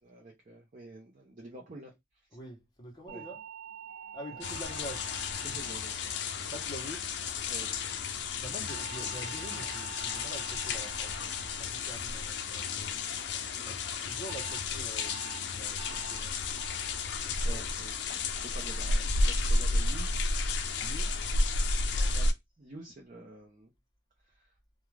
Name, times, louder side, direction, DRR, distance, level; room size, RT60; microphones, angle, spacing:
voice 1, 0.0-1.9 3.1-3.2 4.3-4.8 5.4-6.2 7.5-7.8 13.5-13.8 17.4-20.1 22.1-23.7 24.2-24.5, right 2 dB, 45° right, 0.6 m, -49 dB
voice 2, 2.3-3.4 3.8-5.1 5.4-5.6 6.5-7.1 8.3-12.9 13.7-15.2 15.5-16.8 17.2-17.8 20.8-21.1 21.9-22.2, equal, 25° left, 0.8 m, -46 dB
sound 1, 3.1-7.5 8.7-13.1 14.3-14.6 15.0-15.4 15.8-16.2 16.6-17.0 17.4-17.8 18.2-18.6, right 7 dB, 75° right, 1.0 m, -48 dB
sound 2, 4.4-22.3, left 3 dB, 70° left, 0.4 m, -32 dB
2.4 x 2.3 x 3.1 m
head